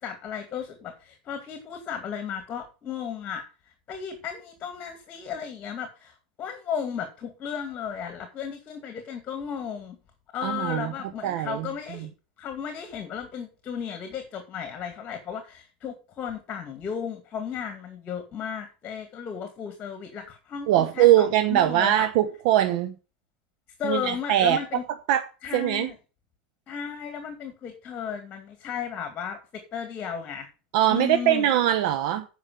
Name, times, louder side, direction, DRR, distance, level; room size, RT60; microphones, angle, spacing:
voice 1, 0.0-10.0 10.3-12.1 12.4-22.1 23.8-24.8 25.4-25.9 26.7-30.5 30.9-31.5, left 7 dB, 35° left, 2.2 m, -34 dB
voice 2, 10.4-10.9 11.2-11.7 20.7-22.9 23.8-24.6 25.1-25.3 25.5-25.9 30.7-32.3, right 12 dB, 60° right, 1.0 m, -22 dB
8.3 x 5.5 x 7.5 m
hypercardioid pair, 105°, 5 cm